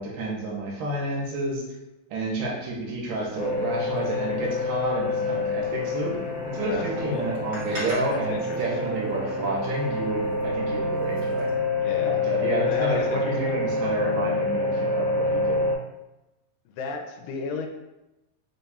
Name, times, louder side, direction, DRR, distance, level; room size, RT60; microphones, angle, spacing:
voice 1, 0.0-1.6 2.1-6.2 6.5-11.5 12.0-15.6, right 2 dB, 80° right, -2 dB, 2.5 m, -30 dB
sound 1, 3.0-11.5, equal, 60° right, 1.1 m, -45 dB
sound 2, 3.4-15.7, left 2 dB, 65° left, 1.7 m, -27 dB
voice 2, 6.5-7.3 8.0-8.9 11.7-12.2 12.7-13.6 16.7-17.7, left 5 dB, 80° left, 3 dB, 2.1 m, -35 dB
5.3 x 4.0 x 2.3 m, 0.97 s
omnidirectional pair, 4.0 m